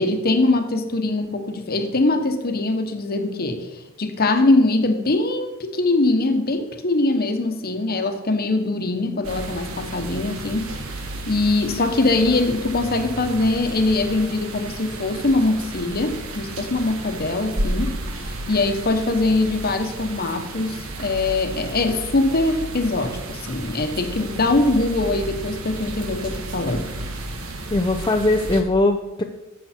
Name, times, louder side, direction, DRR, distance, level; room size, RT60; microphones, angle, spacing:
voice 1, 0.0-3.7 4.0-10.7 11.3-18.0 18.5-26.9, left 2 dB, 50° left, 7 dB, 1.1 m, -22 dB
sound 1, 9.2-28.6, right 2 dB, 90° right, 1.3 m, -33 dB
voice 2, 27.7-29.2, left 2 dB, 20° left, 3 dB, 0.5 m, -20 dB
11.5 x 7.4 x 4.4 m, 1.0 s
head